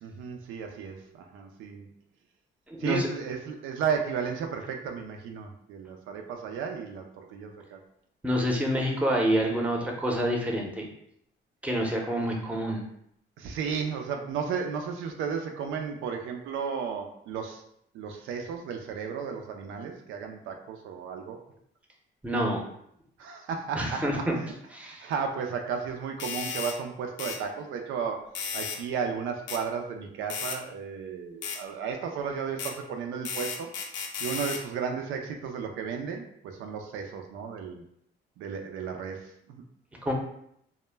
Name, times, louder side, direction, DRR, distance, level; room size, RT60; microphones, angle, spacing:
voice 1, 0.0-1.9 2.8-7.8 13.4-17.6 17.9-21.4 23.2-24.1 24.4-24.5 24.8-33.7 34.2-37.8 38.4-39.6, right 6 dB, 85° right, 3 dB, 0.4 m, -34 dB
voice 2, 2.7-3.1 8.2-10.9 11.6-12.8 22.2-22.6 23.7-24.3 24.7-25.1 40.0-40.1, equal, 5° right, 0 dB, 0.6 m, -27 dB
sound 1, 26.2-26.8 27.2-27.4 28.4-28.8 29.5-29.6 30.3-30.6 31.4-31.6 32.6-32.7 33.3-34.6, left 5 dB, 70° left, 0.4 m, -34 dB
2.1 x 2.1 x 3.2 m, 0.71 s
cardioid pair, 90°, 20 cm